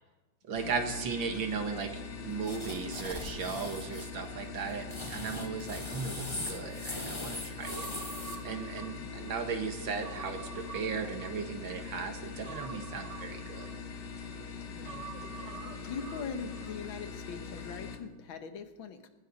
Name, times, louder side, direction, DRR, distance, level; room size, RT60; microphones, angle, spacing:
voice 1, 0.5-1.9 2.2-7.9 8.4-13.7, right 5 dB, 80° right, 6 dB, 2.2 m, -36 dB
fridge compressor old bubbly close, 0.6-18.0, left 5 dB, 60° left, 1.8 m, -42 dB
sound 1, 2.4-4.1 4.7-8.4, left 1 dB, 15° left, 1.5 m, -40 dB
Human voice, 7.6-9.4 9.8-11.8 12.4-14.2 14.8-16.8 17.1-17.2, right 6 dB, 45° right, 1.3 m, -47 dB
voice 2, 14.7-15.3 15.9-19.1, left 6 dB, 85° left, 8 dB, 2.0 m, -42 dB
18.0 x 16.0 x 4.1 m, 1.2 s
omnidirectional pair, 2.1 m